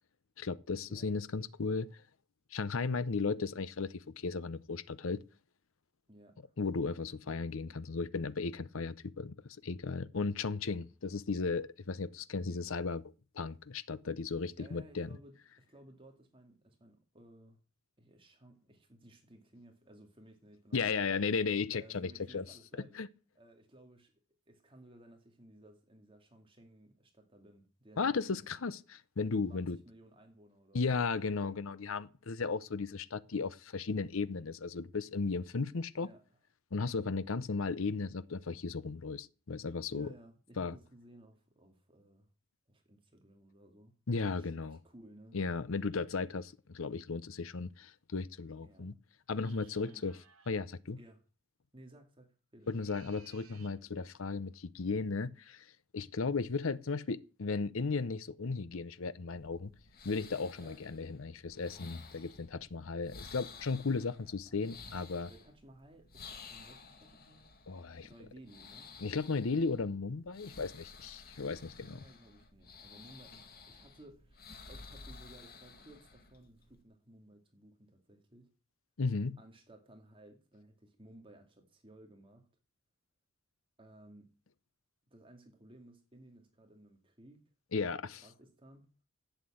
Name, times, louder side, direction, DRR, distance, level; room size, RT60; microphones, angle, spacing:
voice 1, 0.4-2.0 2.5-5.2 6.6-13.0 13.3-15.1 20.7-22.4 22.9-23.1 28.0-29.8 30.7-36.1 36.7-40.1 40.6-40.8 44.1-44.8 45.3-48.9 49.3-50.1 50.5-51.0 52.7-59.7 60.0-65.3 67.7-68.1 69.0-72.0 79.0-79.4 87.7-88.2, left 4 dB, 70° left, 0.7 m, -35 dB
voice 2, 6.1-6.4 14.6-17.6 18.0-21.1 21.7-22.9 23.3-24.1 24.5-28.6 29.5-31.1 36.0-36.2 39.9-42.3 42.7-44.0 44.4-45.4 48.6-48.9 49.4-50.1 51.0-51.2 51.7-52.7 60.6-60.8 64.1-64.6 65.3-67.5 68.1-68.9 71.4-74.4 74.7-78.5 79.4-82.5 83.8-84.3 85.1-87.4 88.2-89.0, right 1 dB, 25° right, 2.3 m, -58 dB
sound 1, 49.3-50.6 52.6-53.8, right 7 dB, 80° right, 3.0 m, -61 dB
sound 2, 59.3-76.8, left 4 dB, 45° left, 2.0 m, -53 dB
11.5 x 8.3 x 8.5 m
head